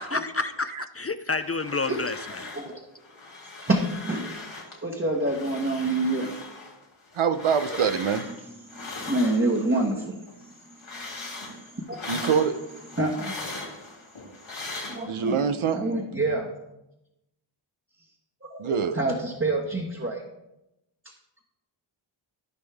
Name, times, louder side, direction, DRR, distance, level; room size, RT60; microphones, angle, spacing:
voice 1, 0.0-2.5, left 3 dB, 30° left, 11 dB, 0.4 m, -29 dB
sound 1, 1.4-2.8 3.0-4.8 5.1-9.9 10.2-15.4, left 3 dB, 70° left, 2.9 m, -40 dB
voice 2, 3.7-4.4 4.8-6.3 7.7-7.9 8.4-10.2 11.0-12.3 13.0-13.3 14.9-15.3 15.7-16.5 18.4-20.2, right 2 dB, 25° right, -1 dB, 1.4 m, -28 dB
voice 3, 7.2-8.2 12.1-12.5 15.0-15.9 18.6-19.0, right 6 dB, 80° right, 10 dB, 0.8 m, -24 dB
14.5 x 5.4 x 3.5 m, 0.90 s
cardioid pair, 50°, 49 cm